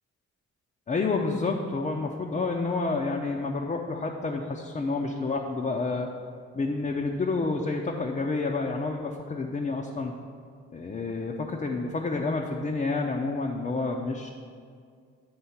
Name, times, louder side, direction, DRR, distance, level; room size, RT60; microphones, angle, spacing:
voice 1, 0.9-6.1 6.5-10.1 10.7-14.3, left 3 dB, 25° left, 0 dB, 0.6 m, -29 dB
9.4 x 3.7 x 5.7 m, 2.1 s
cardioid pair, 90°, 30 cm